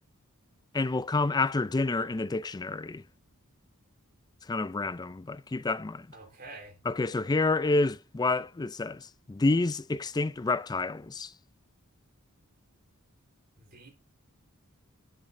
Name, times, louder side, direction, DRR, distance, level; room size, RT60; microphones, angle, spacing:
voice 1, 0.7-3.0 4.5-6.1 6.9-11.3, left 3 dB, 20° left, 0.4 m, -28 dB
voice 2, 6.1-6.8 13.6-13.9, right 2 dB, 45° right, 3.9 m, -47 dB
12.0 x 7.4 x 2.6 m
head